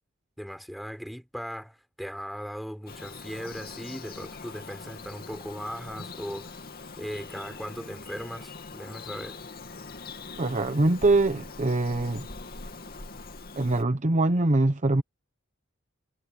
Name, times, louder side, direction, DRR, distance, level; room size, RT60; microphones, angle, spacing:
voice 1, 0.4-6.5 7.0-9.4, equal, ahead, 5.7 m, -38 dB
Bird vocalization bird call bird song, 2.9-13.8, left 3 dB, 50° left, 2.5 m, -42 dB
voice 2, 10.4-12.3 13.6-15.0, right 2 dB, 35° right, 0.9 m, -23 dB
head